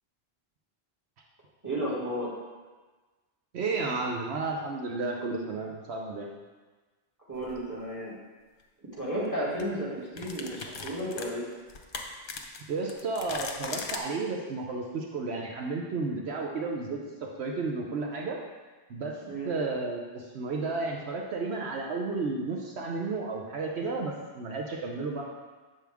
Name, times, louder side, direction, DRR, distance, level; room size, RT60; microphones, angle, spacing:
voice 1, 1.6-2.3 7.3-8.2 8.8-11.4 19.3-19.5, right 1 dB, 15° right, -8 dB, 2.1 m, -33 dB
voice 2, 3.5-6.3 12.7-18.4 18.9-25.2, right 3 dB, 80° right, 0 dB, 1.0 m, -32 dB
sound 1, 7.4-7.6 9.1-9.3 9.6-9.7 10.2-14.0, left 4 dB, 60° left, 0.8 m, -39 dB
7.5 x 6.1 x 3.5 m, 1.3 s
omnidirectional pair, 1.1 m